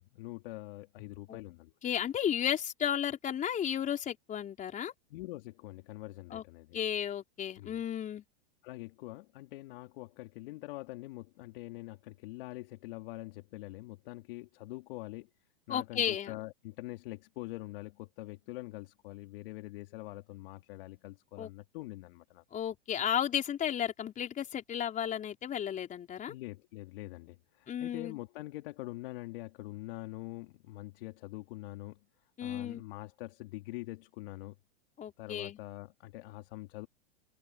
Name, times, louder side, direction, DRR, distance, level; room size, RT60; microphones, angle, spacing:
voice 1, 0.0-1.7 5.1-6.8 7.6-7.8 8.6-15.3 15.7-22.4 26.3-32.0 32.4-34.5 35.2-36.9, left 19 dB, 60° left, 3.2 m, -44 dB
voice 2, 1.8-4.9 6.3-6.4 6.7-8.2 15.7-16.3 21.4-21.5 22.5-26.3 27.7-28.2 32.4-32.8 35.0-35.6, left 9 dB, 25° left, 4.3 m, -33 dB
hypercardioid pair, 130°, 32 cm